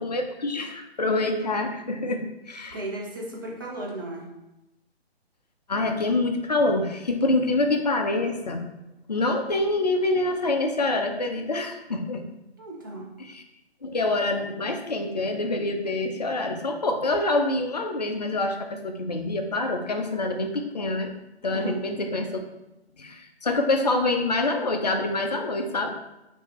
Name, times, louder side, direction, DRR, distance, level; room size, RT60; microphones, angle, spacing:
voice 1, 0.0-2.8 5.7-8.6 9.1-12.2 13.2-13.4 13.8-21.1 21.4-22.4 23.0-25.9, left 2 dB, 40° left, 5 dB, 0.5 m, -26 dB
voice 2, 2.7-4.2 12.6-13.1 21.5-21.8, right 1 dB, 20° right, -4 dB, 0.5 m, -34 dB
5.2 x 2.6 x 3.0 m, 0.95 s
figure-of-eight pair, 140°, 32 cm